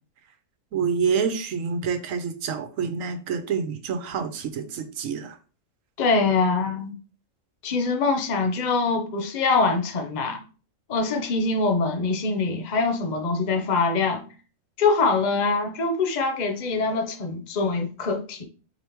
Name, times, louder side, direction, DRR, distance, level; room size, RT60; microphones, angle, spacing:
voice 1, 0.7-5.4, right 6 dB, 80° right, 1.1 m, -27 dB
voice 2, 6.0-6.9 7.6-10.4 10.9-14.2 14.8-18.4, left 4 dB, 40° left, 0.8 m, -24 dB
4.8 x 3.4 x 3.0 m
omnidirectional pair, 1.4 m